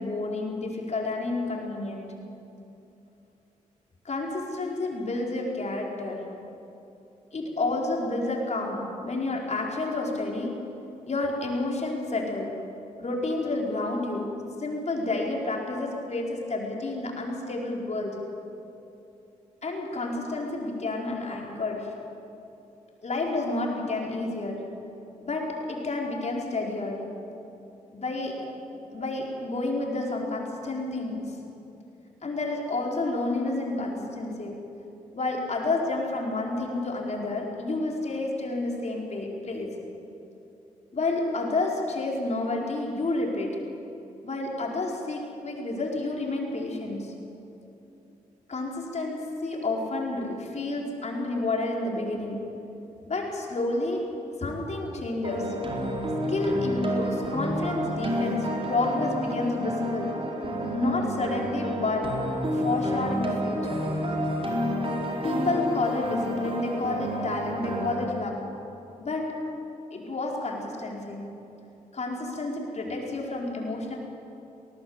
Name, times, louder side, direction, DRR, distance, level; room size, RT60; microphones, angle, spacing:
voice 1, 0.0-2.1 4.0-6.3 7.3-10.6 11.1-12.6 13.0-18.2 19.6-22.0 23.0-24.8 25.2-27.2 27.9-28.5 28.9-31.5 32.2-34.7 35.1-39.8 40.9-43.7 44.2-47.2 48.5-52.6 53.0-55.6 56.3-60.3 60.7-64.0 65.2-68.6 69.0-69.6 69.9-71.4 71.9-74.0, left 2 dB, 50° left, -1 dB, 5.0 m, -30 dB
sound 1, 55.2-68.0, equal, 40° right, 4.6 m, -30 dB
19.5 x 19.0 x 8.2 m, 2.9 s
cardioid pair, 55°, 15 cm